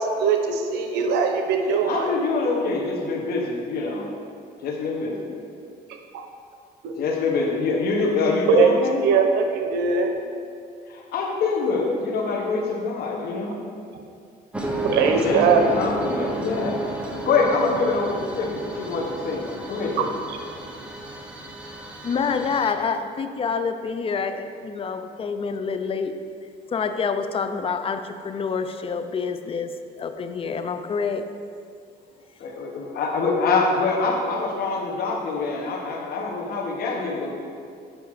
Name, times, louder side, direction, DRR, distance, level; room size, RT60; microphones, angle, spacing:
voice 1, 0.0-2.1 6.1-6.3 6.8-7.0 8.5-8.7 9.0-10.1 14.8-15.6 20.0-20.1, right 6 dB, 85° right, 5 dB, 0.9 m, -21 dB
voice 2, 1.6-4.1 4.6-5.3 7.0-9.0 10.9-13.6 15.0-20.1 32.4-37.3, left 3 dB, 65° left, 0 dB, 1.4 m, -25 dB
sound 1, 14.5-22.7, right 1 dB, 5° right, 0.9 m, -32 dB
voice 3, 22.0-26.2 26.7-31.3, left 5 dB, 35° left, 9 dB, 0.5 m, -27 dB
8.1 x 5.1 x 4.9 m, 2.3 s
cardioid pair, 110°, 17 cm